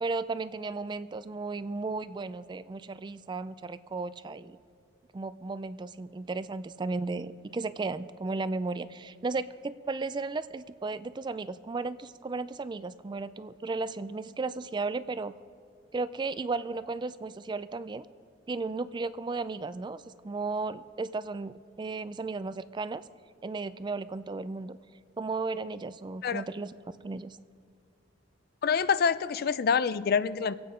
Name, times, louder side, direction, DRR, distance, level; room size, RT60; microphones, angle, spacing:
voice 1, 0.0-4.6 5.1-15.4 15.9-18.1 18.5-23.0 23.4-24.8 25.2-26.7 27.0-27.4, right 3 dB, 25° right, 14 dB, 0.3 m, -34 dB
voice 2, 28.6-30.5, left 6 dB, 55° left, 15 dB, 0.4 m, -26 dB
24.0 x 8.8 x 5.1 m, 2.3 s
head